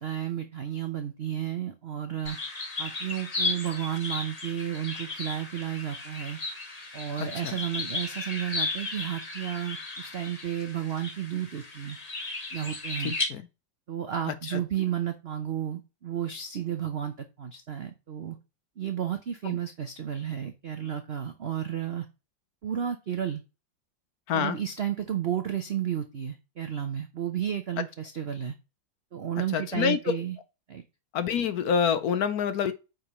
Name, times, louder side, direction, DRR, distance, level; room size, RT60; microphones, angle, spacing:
voice 1, 0.0-2.4 2.8-6.4 6.9-12.0 12.5-13.2 13.9-18.4 18.8-22.1 22.6-23.4 24.3-28.5 29.1-30.4 30.7-30.8, right 10 dB, 60° right, 0.6 m, -32 dB
sound 1, 2.2-13.2, left 3 dB, 25° left, 1.1 m, -35 dB
voice 2, 7.2-7.5 13.0-13.5 14.5-14.6 19.4-19.6 24.3-24.6 29.5-30.0 31.1-32.7, left 7 dB, 65° left, 1.0 m, -27 dB
8.7 x 5.3 x 3.0 m
omnidirectional pair, 2.1 m